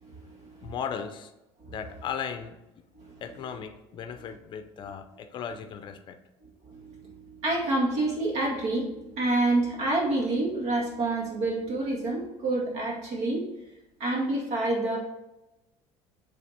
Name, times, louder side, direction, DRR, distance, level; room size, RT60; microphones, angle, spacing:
voice 1, 0.0-0.7 1.6-1.7 3.0-3.2 6.6-13.4 14.0-15.0, right 2 dB, 60° right, -2 dB, 2.0 m, -28 dB
voice 2, 0.6-1.3 1.7-2.5 3.2-6.2, left 7 dB, 40° left, 9 dB, 0.5 m, -36 dB
7.5 x 3.4 x 4.2 m, 0.98 s
cardioid pair, 145°, 12 cm